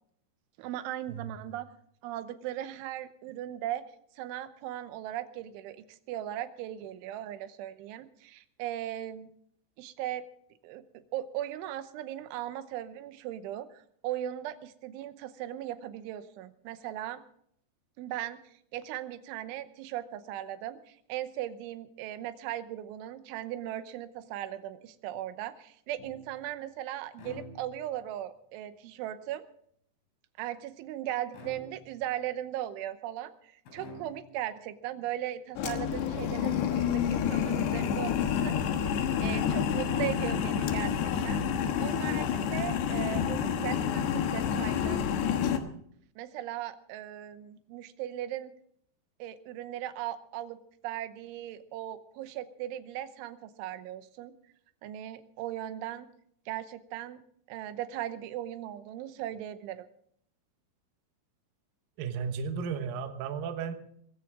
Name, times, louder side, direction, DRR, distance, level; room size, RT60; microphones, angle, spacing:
voice 1, 0.6-1.7 2.0-3.8 4.1-9.3 9.8-10.2 10.6-10.8 11.1-17.2 18.0-18.4 18.7-29.5 30.4-38.6 38.8-41.4 41.8-45.1 46.2-48.5 49.2-50.6 50.8-54.3 54.8-56.1 56.5-57.2 57.5-59.9, right 12 dB, 90° right, 11 dB, 3.4 m, -38 dB
sound 1, 26.0-26.5 27.1-28.1 31.3-32.1 33.6-34.4, left 1 dB, 85° left, 6.9 m, -48 dB
sound 2, 35.6-45.6, left 8 dB, 70° left, 3.2 m, -29 dB
voice 2, 62.0-63.7, right 6 dB, 65° right, 7 dB, 2.6 m, -34 dB
20.5 x 15.0 x 3.6 m, 0.66 s
omnidirectional pair, 5.3 m